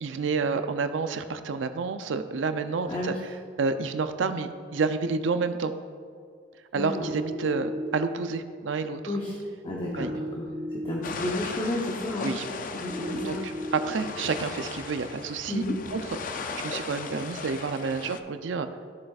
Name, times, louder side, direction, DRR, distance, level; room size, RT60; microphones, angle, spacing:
voice 1, 0.0-5.7 6.7-9.2 10.0-10.1 12.2-12.5 13.2-15.6 15.9-16.2 16.6-18.7, right 4 dB, 80° right, 9 dB, 0.5 m, -29 dB
voice 2, 6.8-7.1 9.1-9.4 9.6-10.4 10.8-12.3 12.7-13.4 15.5-15.7, left 1 dB, 30° left, -3 dB, 0.8 m, -31 dB
sound 1, 6.9-7.9 9.9-10.9 12.9-13.9, equal, 60° left, 2.2 m, -35 dB
sound 2, 11.0-18.2, left 4 dB, 45° left, 0.4 m, -37 dB
12.5 x 7.5 x 2.4 m, 2.2 s
head